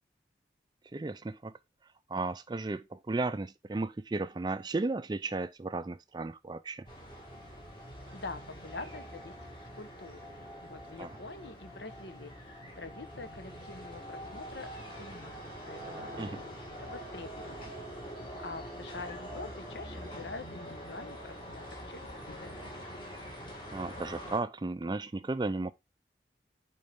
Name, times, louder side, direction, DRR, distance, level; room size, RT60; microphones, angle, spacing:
voice 1, 0.9-1.6 2.1-6.9 11.0-11.2 16.2-16.4 23.7-25.7, right 3 dB, 25° right, 0.3 m, -34 dB
sound 1, 6.8-24.4, equal, 30° left, 2.4 m, -44 dB
voice 2, 8.1-9.3 9.7-15.4 15.7-17.7 18.4-22.7, left 3 dB, 70° left, 1.0 m, -46 dB
7.9 x 4.6 x 3.4 m
head